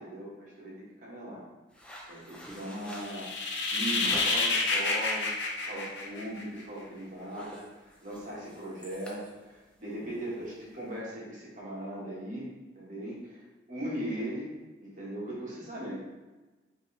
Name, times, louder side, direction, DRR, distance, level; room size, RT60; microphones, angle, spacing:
voice 1, 0.0-1.4 2.1-3.3 3.7-12.5 12.7-14.5 14.8-16.0, right 1 dB, 40° right, -6 dB, 1.4 m, -39 dB
sound 1, 1.7-4.7 5.2-5.5 5.9-6.1 6.4-6.8 7.1-11.0, equal, 5° left, 0.5 m, -47 dB
sound 2, 3.0-6.6, left 3 dB, 65° left, 0.7 m, -29 dB
5.2 x 3.0 x 3.3 m, 1.2 s
head